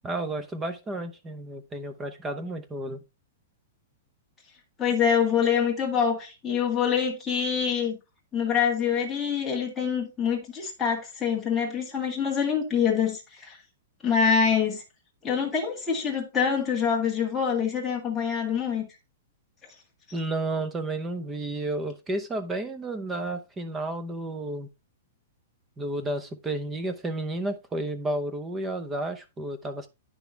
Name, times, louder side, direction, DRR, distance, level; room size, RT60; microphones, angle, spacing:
voice 1, 0.0-3.0 20.1-24.7 25.8-29.9, right 2 dB, 10° right, 0.8 m, -32 dB
voice 2, 4.8-8.0 8.3-13.6 14.0-14.8 15.2-18.9, left 7 dB, 10° left, 1.8 m, -25 dB
9.8 x 6.0 x 3.3 m
hypercardioid pair, 170°, 0 cm